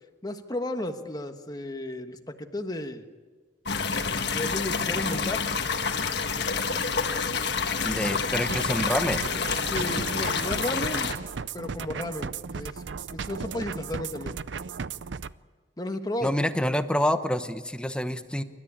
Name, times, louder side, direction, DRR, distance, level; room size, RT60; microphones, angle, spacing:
voice 1, 0.2-3.0 4.3-5.5 8.5-8.6 9.7-11.1 11.5-14.4 15.8-16.4, left 1 dB, 20° left, 7 dB, 1.4 m, -34 dB
sound 1, 3.7-11.1, left 5 dB, 65° left, 1.5 m, -28 dB
voice 2, 7.8-9.2 16.2-18.4, left 1 dB, 5° left, 10 dB, 0.9 m, -27 dB
sound 2, 8.5-15.3, right 5 dB, 85° right, 0.6 m, -36 dB
28.0 x 13.5 x 8.7 m, 1.4 s
head